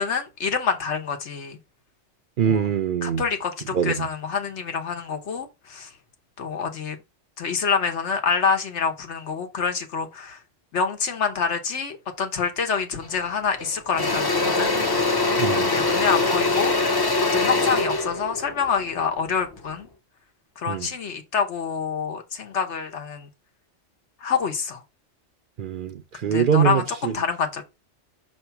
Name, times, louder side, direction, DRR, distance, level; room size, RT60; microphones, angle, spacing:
voice 1, 0.0-1.6 2.4-2.7 3.0-5.9 6.4-7.0 7.4-10.4 10.7-14.7 15.7-16.8 17.3-19.9 20.6-23.3 24.2-24.8 26.2-27.6, left 6 dB, 75° left, 1.3 m, -26 dB
voice 2, 2.4-3.2 3.7-4.1 15.4-15.8 20.7-20.9 25.6-27.2, right 7 dB, 60° right, 0.6 m, -23 dB
Engine / Drill, 13.0-13.2 13.6-19.7, left 3 dB, 25° left, 0.6 m, -23 dB
5.9 x 3.2 x 5.6 m
omnidirectional pair, 1.2 m